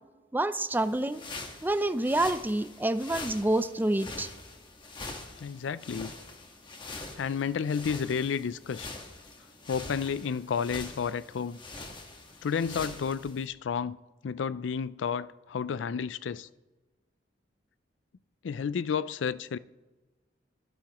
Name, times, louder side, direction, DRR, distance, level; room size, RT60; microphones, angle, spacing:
voice 1, 0.3-1.2 1.6-4.3, right 1 dB, 10° right, 0.5 m, -27 dB
sound 1, 0.7-13.5, left 3 dB, 25° left, 1.5 m, -44 dB
voice 2, 5.4-6.1 7.2-8.9 9.7-11.6 12.4-14.0 14.2-16.5 18.4-19.6, left 6 dB, 85° left, 0.4 m, -31 dB
23.5 x 10.5 x 3.0 m
head